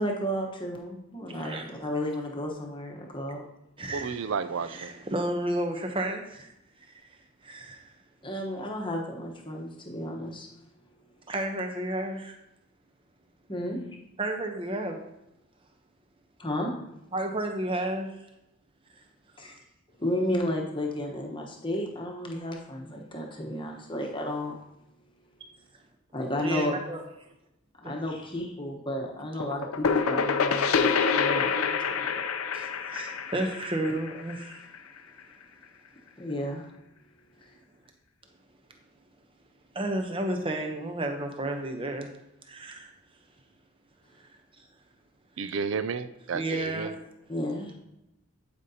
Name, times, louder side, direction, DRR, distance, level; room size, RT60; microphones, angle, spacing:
voice 1, 0.0-3.4 8.2-10.5 13.5-13.8 16.4-16.7 19.4-19.5 20.0-24.6 26.1-26.8 27.8-32.2 36.2-36.7 37.4-37.5 47.3-47.7, left 1 dB, 20° left, 1.1 m, -32 dB
voice 2, 1.3-1.7 3.8-6.5 7.4-7.9 11.3-12.4 14.2-15.0 17.1-18.1 19.4-19.5 26.4-27.0 27.8-28.0 32.5-34.7 39.7-42.1 42.5-42.9 44.2-44.3 46.3-47.1, right 1 dB, 25° right, 0.8 m, -32 dB
voice 3, 3.9-4.9 45.4-46.9, right 5 dB, 60° right, 0.4 m, -32 dB
sound 1, 29.4-35.0, left 5 dB, 80° left, 0.5 m, -27 dB
11.5 x 5.2 x 2.8 m
head